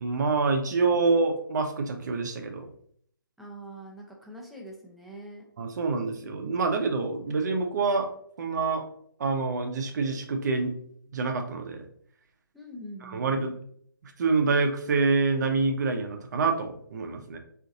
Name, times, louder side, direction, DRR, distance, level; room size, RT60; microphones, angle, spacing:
voice 1, 0.0-2.6 5.6-8.1 8.4-8.8 9.2-10.7 11.1-11.8 13.0-13.5 14.0-17.4, right 4 dB, 50° right, 5 dB, 0.6 m, -26 dB
voice 2, 3.4-5.4 12.5-13.3, right 1 dB, ahead, -2 dB, 0.3 m, -43 dB
3.7 x 2.5 x 2.6 m, 0.63 s
figure-of-eight pair, 140°, 12 cm